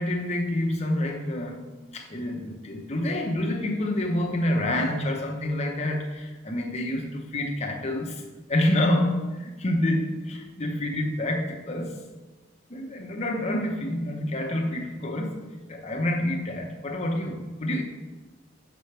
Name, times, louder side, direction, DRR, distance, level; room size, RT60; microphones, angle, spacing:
voice 1, 0.0-1.6 1.9-8.2 8.5-12.0 12.7-15.4 15.7-17.8, left 1 dB, 30° left, 0.7 m, -27 dB
6.9 x 3.3 x 5.7 m
head